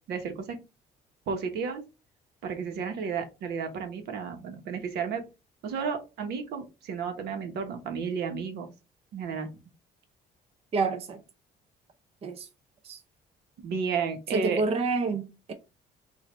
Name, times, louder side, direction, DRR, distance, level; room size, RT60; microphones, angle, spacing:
voice 1, 0.1-0.6 1.3-1.8 2.4-5.2 5.6-8.7 9.1-9.5 13.6-14.6, right 6 dB, 75° right, 1.2 m, -32 dB
voice 2, 10.7-11.2 12.2-12.5 12.8-13.0 14.3-15.5, right 4 dB, 35° right, 0.6 m, -28 dB
5.5 x 2.6 x 3.1 m
cardioid pair, 110°, 17 cm